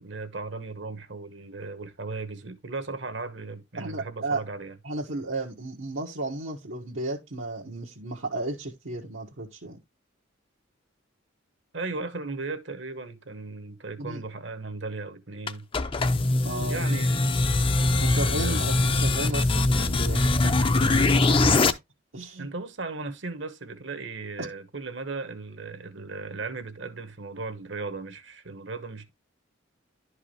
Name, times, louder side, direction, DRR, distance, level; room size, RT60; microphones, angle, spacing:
voice 1, 0.0-4.8 11.7-15.6 16.7-17.3 17.8-17.9 18.1-18.7 20.1-21.1 22.4-29.1, right 3 dB, 65° right, 1.3 m, -37 dB
voice 2, 3.8-4.4 4.8-9.8 14.0-14.2 16.4-16.8 18.0-20.2 21.4-21.7 22.1-22.5 24.4-24.5, right 2 dB, 80° right, 1.5 m, -33 dB
sound 1, 15.5-21.7, left 2 dB, 25° left, 0.5 m, -22 dB
11.5 x 4.8 x 3.2 m
head